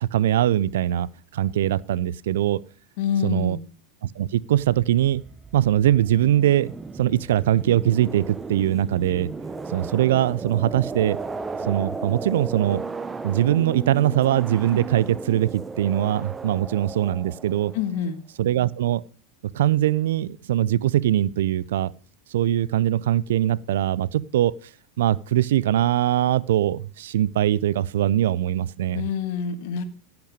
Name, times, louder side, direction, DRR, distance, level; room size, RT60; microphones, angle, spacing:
voice 1, 0.0-2.6 3.2-3.6 4.0-5.2 5.5-6.7 7.0-9.3 9.7-11.2 11.6-12.8 13.2-17.7 18.4-19.0 19.5-21.9 22.3-24.6 25.0-29.0, right 12 dB, 70° right, 0.5 m, -22 dB
voice 2, 3.0-3.6 17.7-18.2 28.9-29.8, left 7 dB, 60° left, 1.6 m, -26 dB
sound 1, 4.7-18.0, right 4 dB, 15° right, 0.9 m, -35 dB
16.0 x 5.9 x 5.1 m
hypercardioid pair, 90°, 0 cm